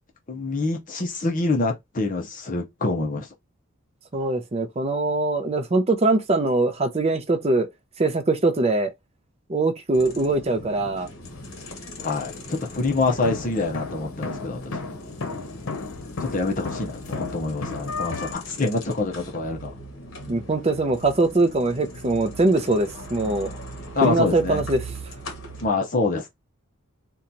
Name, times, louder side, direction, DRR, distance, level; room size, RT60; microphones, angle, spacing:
voice 1, 0.3-3.3 12.0-14.8 16.2-19.8 23.9-24.6 25.6-26.3, left 3 dB, 40° left, 0.6 m, -26 dB
voice 2, 4.1-7.7 8.0-8.9 9.5-11.1 20.3-23.5 24.0-24.9, right 2 dB, 30° right, 0.5 m, -22 dB
sound 1, 9.9-25.7, right 1 dB, 65° left, 1.0 m, -40 dB
sound 2, 11.2-18.3, left 3 dB, 90° left, 0.8 m, -35 dB
2.9 x 2.2 x 3.8 m
head